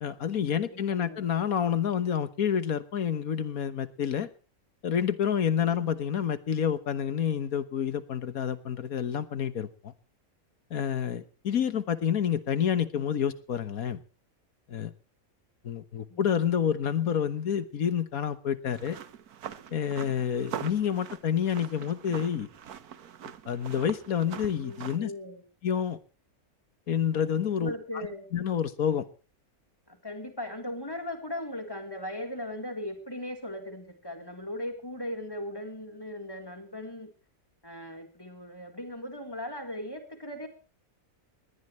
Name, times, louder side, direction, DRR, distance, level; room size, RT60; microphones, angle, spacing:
voice 1, 0.0-4.3 4.8-9.9 10.7-14.0 14.7-14.9 15.6-19.0 19.7-22.5 23.5-25.1 25.6-26.0 26.9-27.7 28.3-29.1, left 8 dB, 75° left, 14 dB, 1.7 m, -28 dB
voice 2, 0.5-1.2 5.6-5.9 16.1-16.4 24.6-25.4 27.6-28.3 29.9-37.1 37.6-40.5, left 1 dB, 15° left, 5 dB, 3.8 m, -38 dB
sound 1, 18.7-25.0, right 8 dB, 85° right, 1.6 m, -43 dB
20.5 x 18.0 x 3.2 m, 0.37 s
omnidirectional pair, 1.6 m